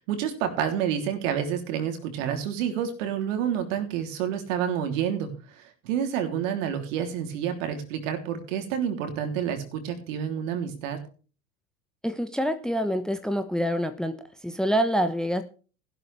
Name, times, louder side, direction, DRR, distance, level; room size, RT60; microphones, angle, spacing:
voice 1, 0.0-11.0, right 9 dB, 60° right, 6 dB, 3.4 m, -29 dB
voice 2, 12.0-15.4, equal, ahead, 9 dB, 1.1 m, -26 dB
15.5 x 11.5 x 3.5 m, 0.37 s
figure-of-eight pair, 80°, 43 cm